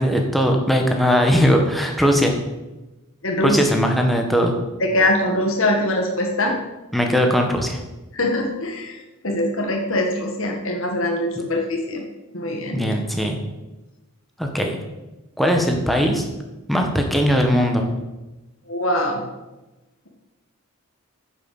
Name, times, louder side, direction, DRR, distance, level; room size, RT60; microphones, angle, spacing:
voice 1, 0.0-2.3 3.4-4.6 6.9-7.8 12.7-13.4 14.4-14.8 15.4-16.2 16.7-17.8, equal, ahead, 2 dB, 1.6 m, -19 dB
voice 2, 3.2-3.6 4.8-6.6 8.1-9.0 9.2-12.0 12.3-12.8 18.7-19.3, left 1 dB, 65° left, 1 dB, 1.8 m, -22 dB
9.9 x 7.5 x 7.9 m, 1.1 s
head